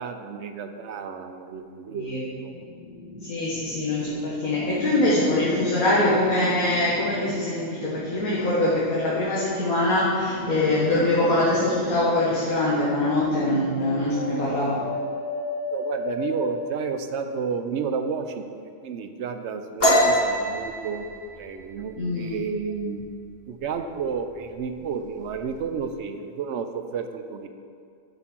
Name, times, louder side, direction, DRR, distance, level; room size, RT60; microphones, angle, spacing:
voice 1, 0.0-2.5 4.1-4.2 14.3-14.4 15.7-21.1 21.3-23.1 23.5-27.5, right 6 dB, 65° right, 7 dB, 0.8 m, -31 dB
voice 2, 1.9-2.3 3.2-14.8 22.0-22.4, left 1 dB, 90° left, -7 dB, 1.9 m, -23 dB
sound 1, 2.5-14.9, left 1 dB, 25° right, 1.3 m, -35 dB
sound 2, 13.8-17.6, left 2 dB, 65° left, 1.0 m, -33 dB
sound 3, 19.8-23.2 23.6-23.9 24.3-24.8 25.1-25.8, equal, 45° left, 1.8 m, -24 dB
7.8 x 5.9 x 6.0 m, 2.4 s
omnidirectional pair, 1.4 m